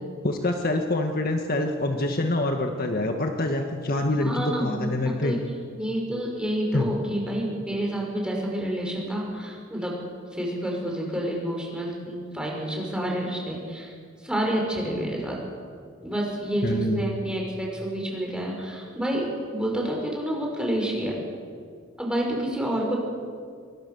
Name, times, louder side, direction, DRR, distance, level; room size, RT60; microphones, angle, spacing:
voice 1, 0.2-5.4 6.7-6.9 16.6-17.0, left 1 dB, 50° left, 3 dB, 1.7 m, -26 dB
voice 2, 4.3-5.4 5.7-10.0 10.3-13.9 14.2-15.4 16.0-21.2 22.0-23.0, right 1 dB, 5° right, -2 dB, 6.1 m, -29 dB
26.5 x 23.5 x 7.1 m, 2.1 s
head